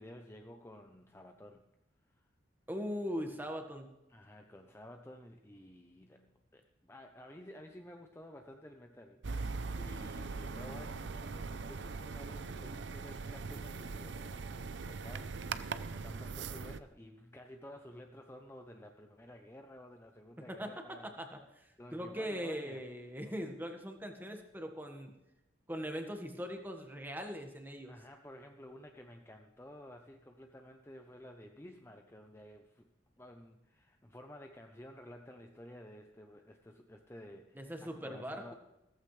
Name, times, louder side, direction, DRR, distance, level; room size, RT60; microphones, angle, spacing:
voice 1, 0.0-1.7 2.0-2.3 4.1-21.1 21.8-23.0 27.9-32.9 33.2-38.5, left 1 dB, 15° left, 4 dB, 0.6 m, -53 dB
voice 2, 2.7-3.9 20.6-25.1 25.7-27.9 37.5-38.5, equal, 10° right, 4 dB, 1.4 m, -40 dB
sound 1, 9.2-16.8, right 4 dB, 65° right, 0.6 m, -41 dB
16.0 x 14.5 x 3.2 m, 0.93 s
head